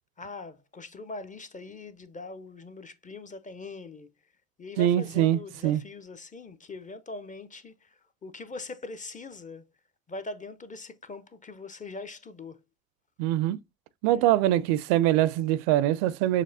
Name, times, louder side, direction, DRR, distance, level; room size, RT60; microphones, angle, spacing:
voice 1, 0.2-4.1 4.6-9.6 10.1-12.6 14.1-14.4, left 3 dB, 20° left, 0.6 m, -42 dB
voice 2, 4.8-5.8 13.2-13.6 14.0-16.4, right 13 dB, 60° right, 0.5 m, -23 dB
6.6 x 2.9 x 2.7 m
figure-of-eight pair, 55°, 39 cm